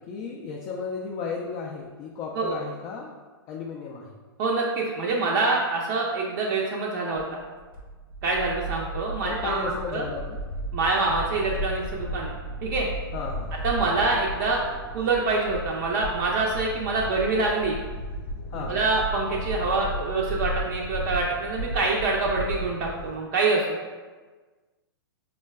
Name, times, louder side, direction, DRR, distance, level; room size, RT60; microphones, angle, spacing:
voice 1, 0.1-3.1 3.5-4.1 9.2-10.4 13.1-13.5 18.5-18.8, left 5 dB, 30° left, -2 dB, 0.3 m, -34 dB
voice 2, 4.4-7.4 8.2-9.6 9.9-10.0 10.7-12.3 12.6-12.9 13.6-14.6 14.9-17.8 18.7-23.7, right 3 dB, 50° right, -2 dB, 0.4 m, -25 dB
sound 1, 7.2-23.1, equal, 65° left, 0.7 m, -34 dB
4.3 x 2.2 x 2.2 m, 1.4 s
hypercardioid pair, 115°, 12 cm